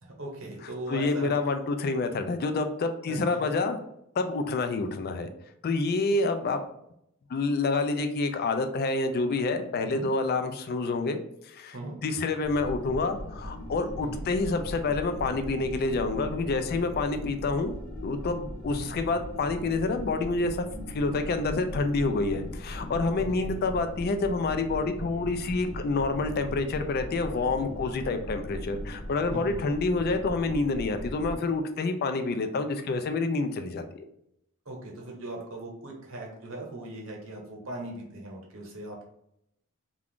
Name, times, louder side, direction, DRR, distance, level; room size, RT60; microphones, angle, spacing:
voice 1, 0.0-1.3 3.1-3.5 9.8-10.1 11.7-12.0 14.0-14.2 18.7-18.9 23.2-23.5 29.3-29.6 34.6-39.1, right 2 dB, 65° right, -1 dB, 0.9 m, -39 dB
voice 2, 0.9-3.8 4.2-5.3 5.6-6.6 7.3-11.2 11.5-11.8 12.0-17.8 18.0-34.0, left 3 dB, 45° left, 7 dB, 0.3 m, -28 dB
sound 1, 12.4-31.3, equal, 70° left, 0.9 m, -39 dB
2.4 x 2.3 x 3.5 m, 0.77 s
head